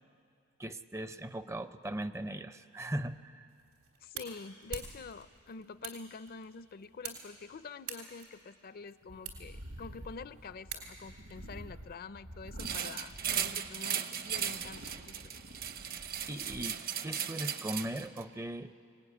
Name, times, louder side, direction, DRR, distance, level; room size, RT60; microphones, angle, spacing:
voice 1, 0.6-3.5 16.3-18.7, right 1 dB, 15° right, 11 dB, 0.5 m, -39 dB
sound 1, 3.5-11.3, right 6 dB, 85° right, 3.6 m, -48 dB
voice 2, 4.0-15.4, left 4 dB, 45° left, 14 dB, 0.5 m, -47 dB
sound 2, 9.1-13.9 14.3-16.7, right 1 dB, 65° right, 1.3 m, -49 dB
sound 3, 12.6-18.2, right 9 dB, 45° right, 0.8 m, -37 dB
23.5 x 18.5 x 10.0 m, 2.4 s
head